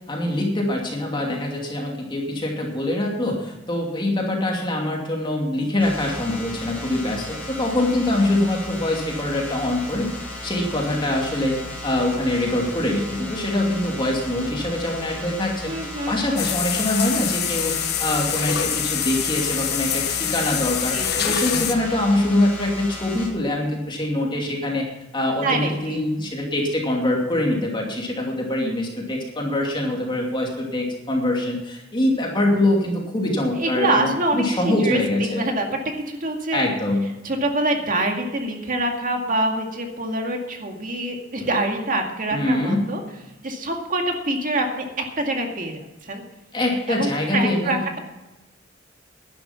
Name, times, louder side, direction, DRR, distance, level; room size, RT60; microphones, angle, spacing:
voice 1, 0.1-10.1 10.4-15.7 16.1-17.7 18.0-24.9 25.1-35.4 36.5-37.1 42.3-42.9 46.5-47.8, left 1 dB, 25° left, -1 dB, 2.6 m, -24 dB
sound 1, 5.8-23.3, left 1 dB, 10° left, 4.6 m, -35 dB
voice 2, 15.7-16.5 20.9-21.3 25.4-26.0 33.6-35.7 36.0-36.6 37.2-43.0 43.4-46.2 46.9-48.0, right 2 dB, 45° right, 3 dB, 2.1 m, -25 dB
sound 2, 16.4-21.7, left 9 dB, 60° left, 1.3 m, -25 dB
11.5 x 11.5 x 5.8 m, 0.99 s
head